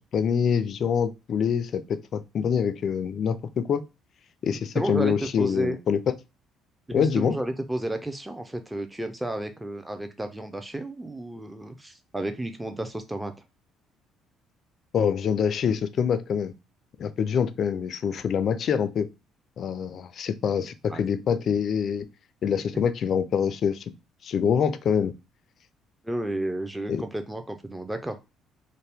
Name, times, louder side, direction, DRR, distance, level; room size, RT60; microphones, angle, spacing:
voice 1, 0.1-3.9 4.4-6.2 6.9-7.4 14.9-16.5 17.0-19.1 19.6-22.1 22.4-23.8 24.2-25.1 26.9-27.0, left 7 dB, 55° left, 0.3 m, -25 dB
voice 2, 4.7-5.8 6.9-13.3 20.9-21.0 26.0-28.2, right 1 dB, 10° right, 0.5 m, -32 dB
2.7 x 2.1 x 3.4 m
supercardioid pair, 65°, 0 cm